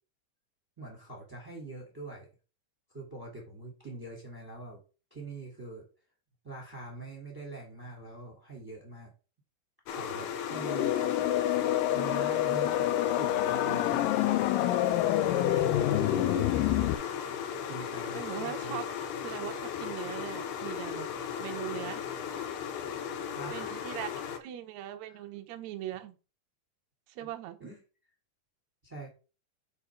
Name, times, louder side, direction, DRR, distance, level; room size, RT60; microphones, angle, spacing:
voice 1, 0.8-2.3 2.9-4.8 5.1-5.9 6.4-9.1 9.9-11.0 11.9-14.4 16.6-16.8 17.6-18.8 23.3-23.9 25.1-25.2 27.2-27.3 27.6-27.8 28.8-29.1, right 3 dB, 5° right, 2.0 m, -44 dB
sound 1, 9.9-24.4, left 8 dB, 75° left, 1.8 m, -37 dB
sound 2, 10.5-16.9, left 13 dB, 90° left, 1.9 m, -27 dB
voice 2, 18.1-18.8 19.2-21.1 21.4-22.0 23.5-26.2 27.1-27.6, right 12 dB, 85° right, 1.6 m, -40 dB
5.5 x 5.0 x 4.6 m
omnidirectional pair, 4.3 m